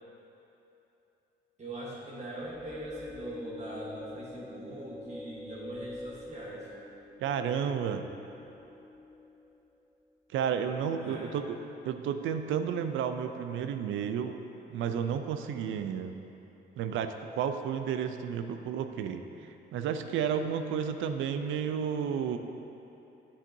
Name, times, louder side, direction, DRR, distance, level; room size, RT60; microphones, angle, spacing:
voice 1, 1.6-6.7 10.9-11.4, right 1 dB, 35° right, -6 dB, 1.3 m, -42 dB
sound 1, 2.4-9.7, left 1 dB, ahead, 0.4 m, -46 dB
voice 2, 7.2-8.0 10.3-11.4 11.8-14.4 14.7-16.2 16.8-19.2 19.7-22.4, right 8 dB, 80° right, 8 dB, 0.5 m, -32 dB
8.7 x 7.4 x 2.7 m, 3.0 s
cardioid pair, 90°, 20 cm